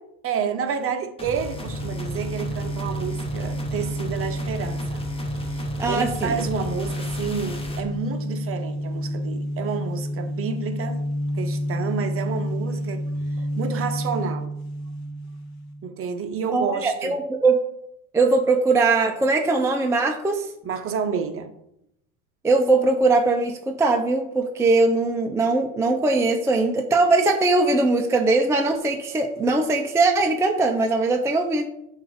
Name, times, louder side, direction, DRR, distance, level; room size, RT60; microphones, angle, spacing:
voice 1, 0.2-5.0 5.5-11.0 11.3-14.5 15.8-17.2 20.6-21.5, right 6 dB, 35° right, 0.8 m, -30 dB
sound 1, 1.2-7.9, left 1 dB, 15° left, 1.2 m, -35 dB
sound 2, 1.4-15.9, equal, 45° left, 1.0 m, -30 dB
voice 2, 5.8-6.3 16.5-17.6 18.1-20.5 22.4-31.7, right 3 dB, 5° right, 0.5 m, -21 dB
7.5 x 2.7 x 5.0 m
hypercardioid pair, 95°, 41 cm